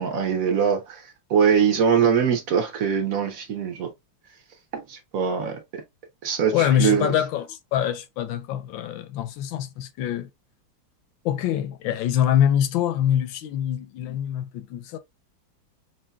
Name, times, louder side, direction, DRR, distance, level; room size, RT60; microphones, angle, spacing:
voice 1, 0.0-3.9 4.7-5.6 6.2-7.1, right 7 dB, 60° right, 1.0 m, -22 dB
voice 2, 6.5-10.3 11.2-15.0, left 10 dB, 85° left, 1.3 m, -24 dB
5.5 x 2.7 x 2.2 m
omnidirectional pair, 2.1 m